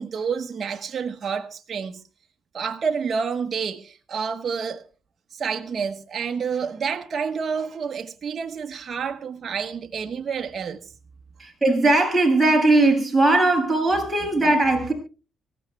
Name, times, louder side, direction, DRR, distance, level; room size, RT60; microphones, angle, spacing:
voice 1, 0.0-2.0 2.5-4.8 5.3-10.8, right 6 dB, 50° right, 1.2 m, -29 dB
voice 2, 11.4-14.9, right 2 dB, 15° right, 8.0 m, -19 dB
25.0 x 15.0 x 2.2 m
cardioid pair, 90°, 0 cm